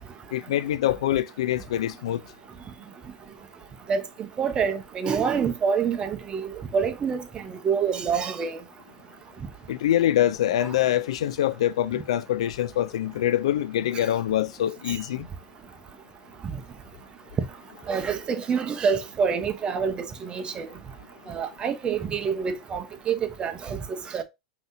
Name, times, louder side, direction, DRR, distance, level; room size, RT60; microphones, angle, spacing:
voice 1, 0.3-2.2 9.7-15.3, left 12 dB, 80° left, 0.3 m, -25 dB
voice 2, 4.4-6.5 6.7-8.6 10.6-10.7 14.9-15.0 17.9-20.7 21.3-23.8 24.1-24.2, right 6 dB, 30° right, 0.8 m, -27 dB
5.3 x 2.9 x 2.6 m
hypercardioid pair, 100°, 3 cm